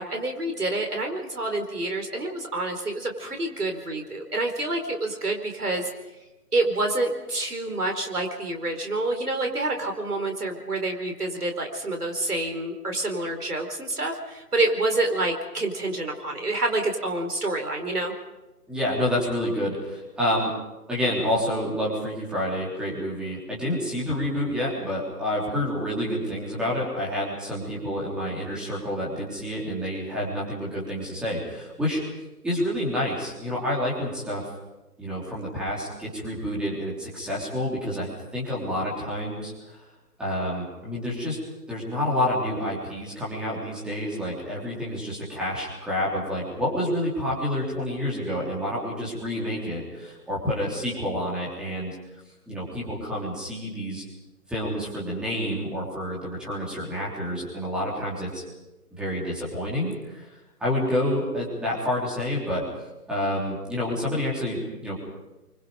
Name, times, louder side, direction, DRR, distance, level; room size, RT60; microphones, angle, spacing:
voice 1, 0.0-5.9 6.5-18.1, right 2 dB, 75° right, 4 dB, 4.7 m, -27 dB
voice 2, 18.7-20.5 20.9-32.0 32.4-34.5 35.0-39.8 40.2-41.4 41.7-51.9 52.5-54.0 54.5-58.4 58.9-60.3 60.6-62.7 63.1-65.0, left 1 dB, ahead, -6 dB, 3.4 m, -28 dB
26.5 x 24.5 x 5.2 m, 1.0 s
figure-of-eight pair, 155°, 46 cm